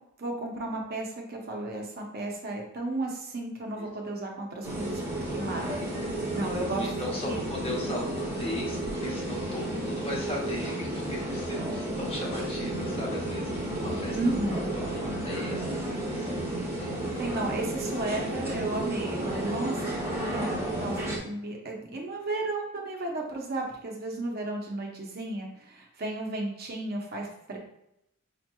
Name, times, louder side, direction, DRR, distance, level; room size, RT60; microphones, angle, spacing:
voice 1, 0.2-5.0 5.3-6.9 7.3-7.4 14.1-14.7 17.2-27.6, right 2 dB, 45° right, 0 dB, 0.7 m, -34 dB
sound 1, 4.6-21.2, right 1 dB, 10° right, 0.9 m, -32 dB
voice 2, 5.8-6.1 6.7-14.2 14.5-14.6 14.9-16.4 16.7-17.0, left 1 dB, 25° left, -3 dB, 0.8 m, -38 dB
5.0 x 2.9 x 2.2 m, 0.80 s
head